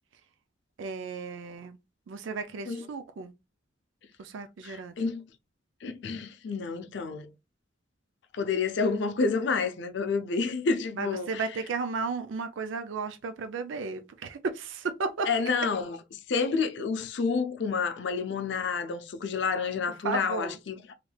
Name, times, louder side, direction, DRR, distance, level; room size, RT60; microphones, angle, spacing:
voice 1, 0.8-1.8 2.1-3.3 4.2-5.1 10.9-15.3 20.0-20.6, right 4 dB, 80° right, 0.4 m, -34 dB
voice 2, 4.6-5.3 5.8-7.3 8.3-11.4 15.3-16.0 16.3-20.9, left 4 dB, 65° left, 0.4 m, -29 dB
3.2 x 3.1 x 2.2 m
head